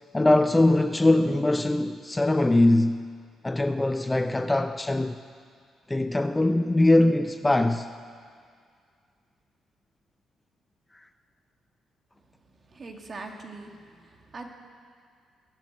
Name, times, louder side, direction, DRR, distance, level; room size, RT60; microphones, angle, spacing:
voice 1, 0.1-3.0 3.4-5.2 5.9-7.9, left 2 dB, 15° left, 0.4 m, -22 dB
voice 2, 12.7-14.5, right 3 dB, 40° right, 1.9 m, -42 dB
22.0 x 7.5 x 7.7 m
cardioid pair, 90°, 0 cm